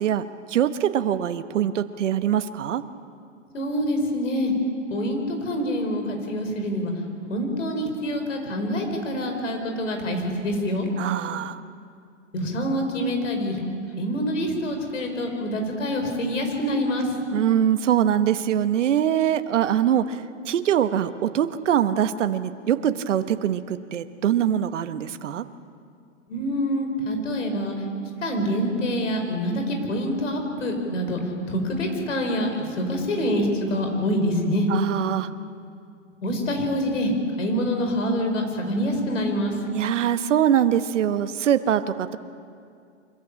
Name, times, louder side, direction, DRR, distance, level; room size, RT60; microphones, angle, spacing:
voice 1, 0.0-2.8 11.0-11.6 17.3-25.5 34.7-35.3 39.7-42.2, right 10 dB, 70° right, 11 dB, 1.2 m, -23 dB
voice 2, 3.5-4.5 4.9-6.9 7.3-10.9 12.3-13.6 13.9-17.1 26.3-27.7 28.2-31.2 31.5-34.7 36.2-37.1 37.4-39.6, equal, 80° left, 4 dB, 5.1 m, -26 dB
25.0 x 14.5 x 8.7 m, 2.3 s
hypercardioid pair, 125°, 37 cm